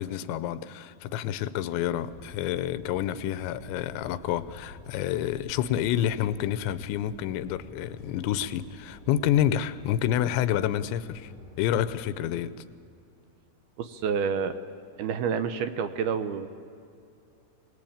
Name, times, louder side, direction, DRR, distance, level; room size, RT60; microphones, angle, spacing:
voice 1, 0.0-11.3 11.6-12.5, left 11 dB, 85° left, 14 dB, 3.1 m, -28 dB
sound 1, 2.1-12.1, left 2 dB, 10° right, 6.1 m, -49 dB
voice 2, 13.8-14.6 15.0-16.5, right 6 dB, 75° right, 10 dB, 2.4 m, -28 dB
25.0 x 19.5 x 8.7 m, 2.5 s
omnidirectional pair, 5.2 m